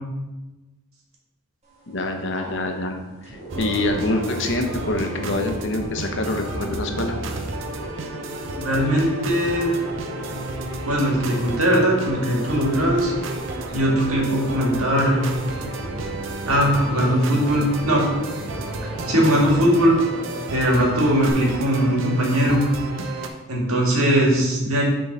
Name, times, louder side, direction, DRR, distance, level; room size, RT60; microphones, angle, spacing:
sound 1, 1.6-21.3, right 2 dB, 30° right, 1.5 m, -37 dB
voice 1, 1.9-7.2, left 2 dB, 55° left, 4 dB, 0.8 m, -26 dB
sound 2, 3.5-23.3, right 2 dB, 60° right, 0.7 m, -32 dB
voice 2, 8.6-9.7 10.8-13.1 13.7-15.2 16.5-18.1 19.1-20.0 20.5-22.6 23.5-24.8, equal, 90° right, -1 dB, 1.9 m, -20 dB
6.8 x 3.7 x 6.0 m, 1.1 s
head